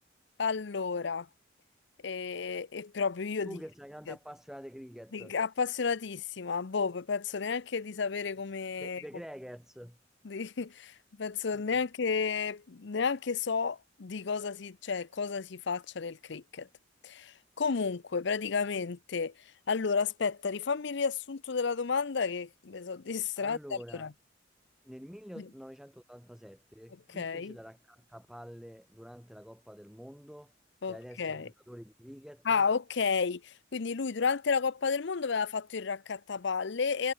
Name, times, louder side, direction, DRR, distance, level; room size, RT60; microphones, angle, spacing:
voice 1, 0.4-1.3 2.0-3.6 5.1-9.0 10.2-16.7 17.0-19.3 19.7-23.6 23.9-24.1 27.1-27.6 30.8-31.5 32.5-37.1, left 5 dB, 65° left, 0.6 m, -32 dB
voice 2, 3.4-5.4 8.8-10.0 11.5-11.7 23.4-24.1 24.8-30.5 30.8-32.7, equal, 5° right, 5.6 m, -47 dB
head